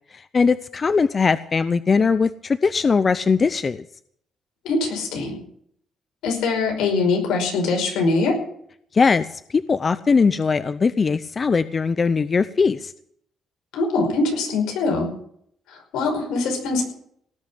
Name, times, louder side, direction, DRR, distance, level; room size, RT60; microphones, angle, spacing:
voice 1, 0.3-3.8 8.9-12.9, left 5 dB, 35° left, 14 dB, 0.7 m, -20 dB
voice 2, 4.6-5.4 6.2-8.4 13.7-15.1 15.7-16.8, left 3 dB, 90° left, 2 dB, 5.3 m, -22 dB
18.5 x 6.5 x 9.9 m, 0.67 s
cardioid pair, 90°, 0 cm